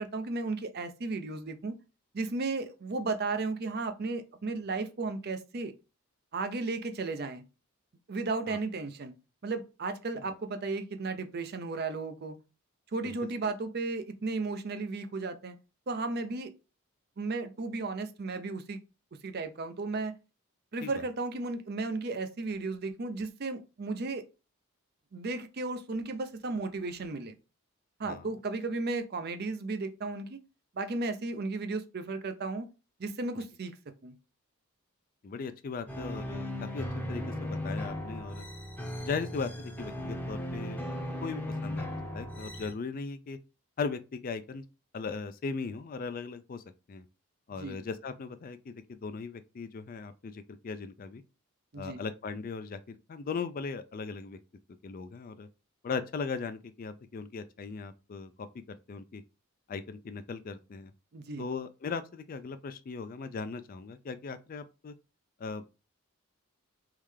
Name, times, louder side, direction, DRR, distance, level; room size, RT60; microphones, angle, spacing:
voice 1, 0.0-1.7 2.1-5.7 6.3-7.4 8.1-9.1 9.4-12.4 12.9-15.5 15.9-16.5 17.2-18.8 19.1-20.1 20.7-24.2 25.1-27.3 28.0-30.4 30.7-32.7 33.0-33.7 34.0-34.1 47.6-47.8 51.7-52.0 61.1-61.4, right 3 dB, 45° right, 0.5 m, -34 dB
voice 2, 35.2-38.5 39.0-43.4 43.8-44.6 44.9-47.0 47.5-51.2 51.7-54.4 54.8-55.5 55.8-59.2 59.7-60.9 61.4-64.9 65.4-65.7, left 5 dB, 40° left, 0.3 m, -38 dB
sound 1, 35.9-42.7, left 1 dB, 5° left, 0.7 m, -37 dB
3.6 x 3.2 x 3.2 m
head